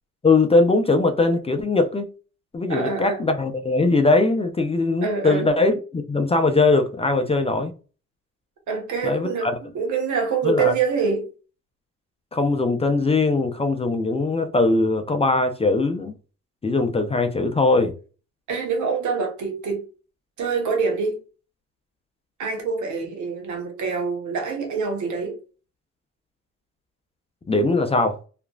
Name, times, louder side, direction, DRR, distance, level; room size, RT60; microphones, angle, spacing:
voice 1, 0.2-2.1 2.5-7.7 9.0-9.5 10.4-10.7 12.3-16.2 16.6-17.9 27.5-28.2, left 3 dB, 20° left, 0.5 m, -20 dB
voice 2, 2.7-3.2 5.0-5.5 8.7-11.3 18.5-19.8 20.4-21.2 22.4-25.4, right 5 dB, 75° right, 1.2 m, -25 dB
2.8 x 2.5 x 2.2 m
cardioid pair, 90°, 30 cm